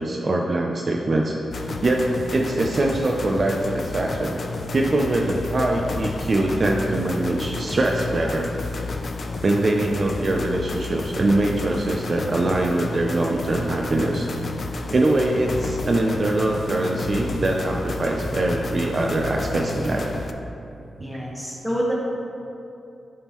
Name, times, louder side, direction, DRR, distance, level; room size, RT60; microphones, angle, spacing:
voice 1, 0.0-1.3 1.8-4.4 4.7-8.5 9.4-14.3 14.9-20.1, right 2 dB, 40° right, 0 dB, 0.4 m, -23 dB
sound 1, 1.5-20.3, left 3 dB, 45° left, 0.4 m, -31 dB
voice 2, 21.0-21.9, equal, ahead, -5 dB, 1.3 m, -27 dB
10.5 x 3.6 x 3.0 m, 2.7 s
wide cardioid pair, 105°, 0 cm